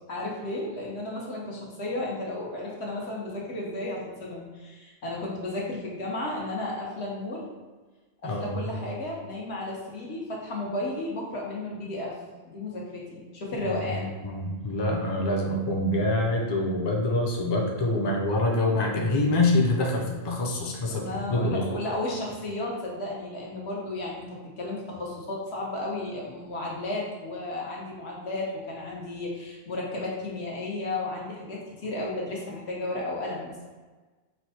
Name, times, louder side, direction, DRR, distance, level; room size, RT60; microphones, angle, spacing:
voice 1, 0.1-7.5 8.2-12.2 12.4-14.1 20.9-33.7, left 2 dB, 80° left, -3 dB, 1.3 m, -33 dB
voice 2, 8.2-8.8 13.6-13.8 14.2-21.7, left 2 dB, 35° left, 0 dB, 0.5 m, -26 dB
4.6 x 2.2 x 4.1 m, 1.3 s
omnidirectional pair, 1.1 m